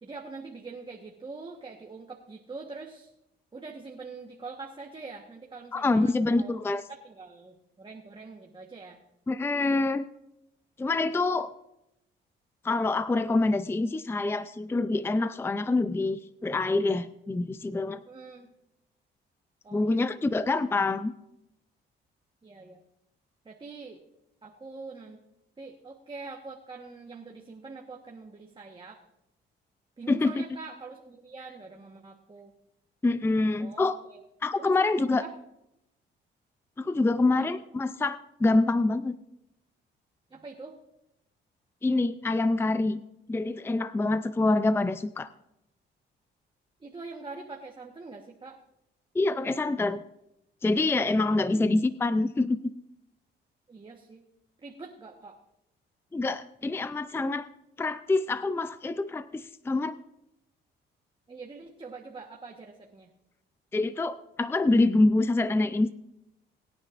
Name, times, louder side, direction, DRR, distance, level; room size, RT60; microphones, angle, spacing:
voice 1, 0.0-3.1 3.5-6.5 6.9-9.0 18.1-18.5 19.6-20.1 22.4-22.8 23.4-24.0 24.4-25.2 25.6-29.0 30.0-32.5 33.6-34.2 34.6-34.8 35.2-35.3 37.3-37.5 40.3-40.7 46.8-48.6 51.5-51.8 53.7-54.2 54.6-55.4 61.3-63.1, right 4 dB, 25° right, 0 dB, 1.3 m, -44 dB
voice 2, 5.7-6.8 9.3-10.0 10.8-11.5 12.6-18.0 19.7-21.1 30.1-30.4 33.0-34.0 34.4-35.2 36.8-39.2 41.8-43.0 43.3-45.3 49.1-50.0 50.6-52.7 56.1-57.5 57.8-60.0 63.7-65.9, left 2 dB, 10° left, 13 dB, 0.5 m, -26 dB
23.5 x 9.6 x 2.6 m, 0.85 s
cardioid pair, 90°, 20 cm